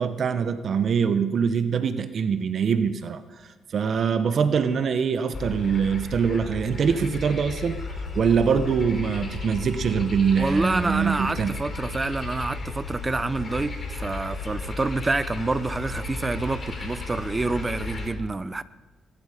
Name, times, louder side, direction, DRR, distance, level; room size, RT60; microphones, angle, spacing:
voice 1, 0.0-11.5, right 6 dB, 55° right, 10 dB, 0.9 m, -24 dB
sound 1, 5.3-18.1, left 3 dB, 40° left, 3.9 m, -34 dB
voice 2, 10.4-18.6, right 3 dB, 20° right, 15 dB, 0.7 m, -27 dB
23.0 x 12.5 x 5.1 m, 1.3 s
cardioid pair, 90°, 0 cm